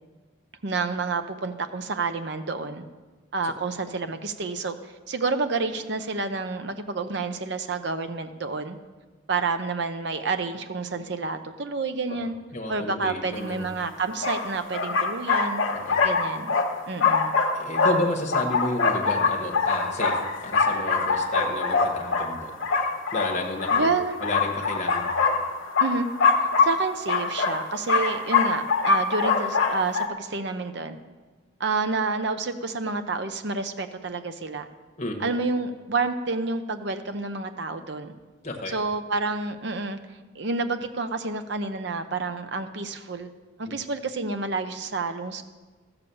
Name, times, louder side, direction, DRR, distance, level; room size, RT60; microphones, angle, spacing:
voice 1, 0.6-2.8 3.3-8.8 9.3-12.3 12.7-15.6 16.0-16.6 16.9-17.4 23.7-24.2 25.8-26.1 26.4-31.0 31.6-34.7 35.2-38.1 38.7-40.0 40.3-43.3 43.6-45.4, right 3 dB, 55° right, 8 dB, 0.7 m, -29 dB
voice 2, 12.1-13.7 15.7-16.0 17.5-22.5 23.1-25.1 35.0-35.3 38.4-38.8, left 1 dB, 35° left, 1 dB, 1.4 m, -32 dB
sound 1, 13.5-13.6 14.2-30.1, left 4 dB, 70° left, 1.1 m, -24 dB
14.0 x 6.9 x 7.0 m, 1.3 s
head